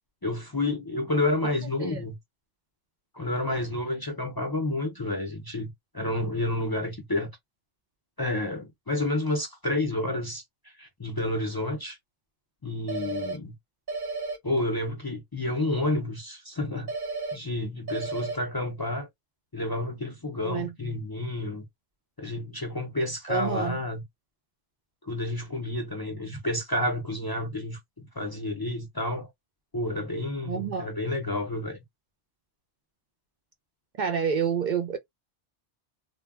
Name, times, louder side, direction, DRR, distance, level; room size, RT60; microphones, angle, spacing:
voice 1, 0.2-2.2 3.1-7.3 8.2-12.0 12.6-13.5 14.4-16.9 17.3-19.1 19.5-21.6 22.2-24.0 25.0-29.3 29.7-31.8, left 1 dB, 35° left, 0.4 m, -30 dB
sound 1, 12.9-13.4 13.9-14.4 16.9-17.4 17.9-18.4, right 3 dB, 25° right, 0.8 m, -32 dB
voice 2, 23.3-23.8 30.5-30.9 34.0-35.0, right 7 dB, 60° right, 0.5 m, -28 dB
2.2 x 2.1 x 3.4 m
omnidirectional pair, 1.2 m